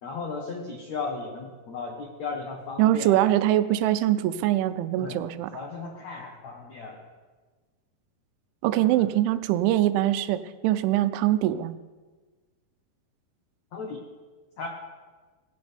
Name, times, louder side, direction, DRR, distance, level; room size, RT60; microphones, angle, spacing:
voice 1, 0.0-3.3 5.0-5.2 5.5-7.0 8.7-8.8 13.7-14.0 14.6-14.7, left 4 dB, 90° left, 0 dB, 1.5 m, -35 dB
voice 2, 2.8-5.5 8.6-11.7, right 13 dB, 85° right, 13 dB, 3.0 m, -23 dB
17.5 x 16.0 x 3.4 m, 1.4 s
omnidirectional pair, 5.3 m